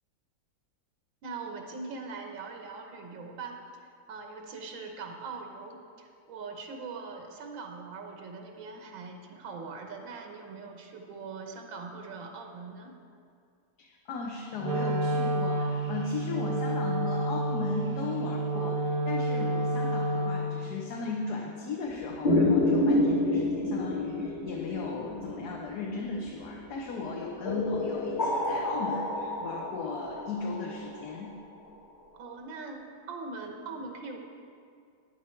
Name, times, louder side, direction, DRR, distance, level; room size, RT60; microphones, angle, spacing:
voice 1, 1.2-3.6 4.1-13.0 32.1-34.2, right 4 dB, 85° right, 3 dB, 1.8 m, -41 dB
voice 2, 13.8-31.3, left 4 dB, 60° left, -1 dB, 1.4 m, -36 dB
Wind instrument woodwind instrument, 14.6-20.6, right 1 dB, 70° right, 1.3 m, -29 dB
sound 1, 22.2-26.5 27.5-31.3, left 2 dB, 25° left, 1.2 m, -28 dB
11.0 x 9.7 x 4.5 m, 2.3 s
omnidirectional pair, 2.0 m